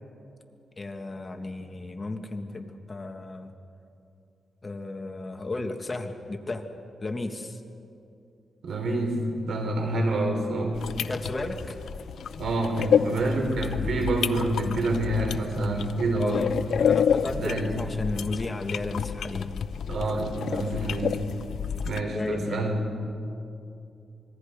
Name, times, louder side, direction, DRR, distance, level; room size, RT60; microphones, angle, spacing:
voice 1, 0.8-3.5 4.6-6.6 7.0-7.6 10.9-11.8 16.2-16.5 16.8-19.6 22.1-22.7, left 2 dB, 30° left, 5 dB, 1.7 m, -34 dB
voice 2, 8.6-10.8 12.4-16.4 17.3-17.7 19.9-21.2 21.8-22.9, right 1 dB, 80° right, 3 dB, 3.9 m, -27 dB
sound 1, 10.7-22.0, left 7 dB, 80° left, 0.6 m, -29 dB
26.0 x 22.0 x 5.1 m, 2.6 s
cardioid pair, 90°, 0 cm